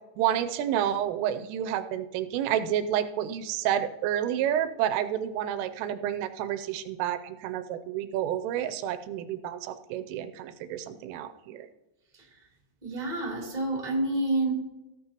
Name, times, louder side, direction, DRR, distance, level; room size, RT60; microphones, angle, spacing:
voice 1, 0.2-11.7, right 10 dB, 85° right, 10 dB, 3.2 m, -29 dB
voice 2, 12.8-14.5, right 2 dB, 10° right, -3 dB, 2.2 m, -29 dB
18.0 x 8.5 x 2.9 m, 1.0 s
omnidirectional pair, 5.7 m